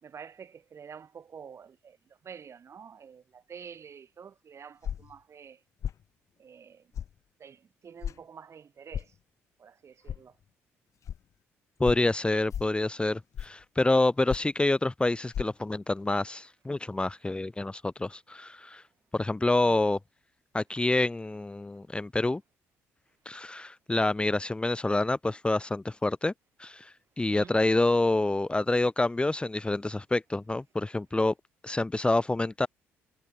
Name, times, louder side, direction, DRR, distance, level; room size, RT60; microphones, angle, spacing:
voice 1, 0.0-2.0 2.2-5.6 6.4-6.9 7.4-9.1 9.6-10.3 19.6-19.8 27.3-27.6, right 7 dB, 50° right, 5.1 m, -48 dB
sound 1, 4.8-5.2 5.8-6.0 6.9-7.1 8.0-8.2 8.9-9.1 10.1-10.2 11.0-11.2 11.8-12.1 12.5-12.8 13.3-13.6 14.3-14.6 15.3-15.4, left 9 dB, 55° left, 1.0 m, -34 dB
voice 2, 11.8-18.8 19.1-20.0 20.5-22.4 23.2-26.3 26.6-31.3 31.6-32.7, left 2 dB, 15° left, 1.3 m, -27 dB
hypercardioid pair, 55°, 6 cm